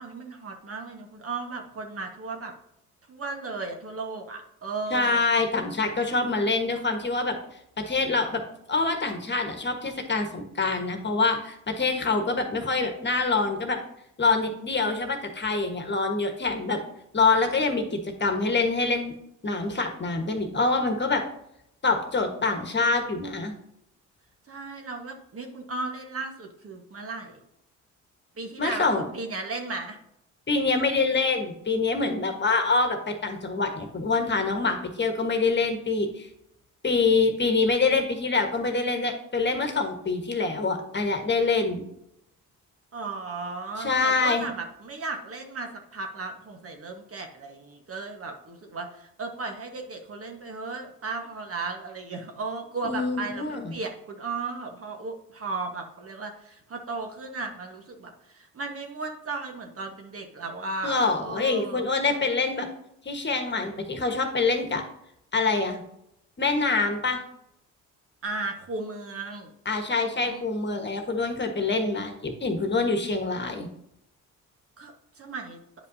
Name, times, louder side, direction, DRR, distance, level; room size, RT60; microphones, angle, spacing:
voice 1, 0.0-2.5 3.1-5.2 24.5-27.4 28.4-30.0 42.9-61.9 68.2-69.5 70.2-70.4 74.8-75.6, right 3 dB, 40° right, 3 dB, 1.4 m, -35 dB
voice 2, 4.9-7.4 7.8-8.4 8.7-13.8 14.2-16.8 17.1-19.1 19.4-21.2 21.8-23.5 28.6-29.0 30.5-36.3 36.8-41.8 43.8-44.5 52.8-53.7 60.8-62.7 63.0-64.8 65.3-65.8 66.4-67.2 69.6-73.7, left 3 dB, 30° left, 4 dB, 1.4 m, -25 dB
9.9 x 5.3 x 2.7 m, 0.78 s
supercardioid pair, 65°, 35 cm